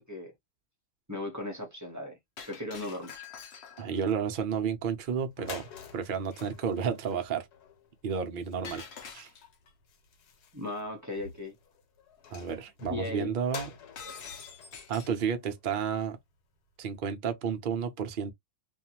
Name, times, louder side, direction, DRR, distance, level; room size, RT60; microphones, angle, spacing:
voice 1, 1.1-2.2 2.5-3.3 10.5-11.6 12.9-13.6 14.0-14.2, left 2 dB, 20° right, 0.6 m, -37 dB
Shatter, 2.4-4.0 8.6-9.7 14.0-15.2, left 6 dB, 60° left, 0.7 m, -46 dB
voice 2, 3.8-7.5 8.0-8.9 9.1-9.3 12.3-13.7 14.9-16.2 16.8-18.3, right 7 dB, 70° right, 0.4 m, -31 dB
sound 1, 5.0-5.1 5.3-16.1, left 6 dB, 85° left, 1.3 m, -49 dB
2.5 x 2.4 x 2.8 m
omnidirectional pair, 1.7 m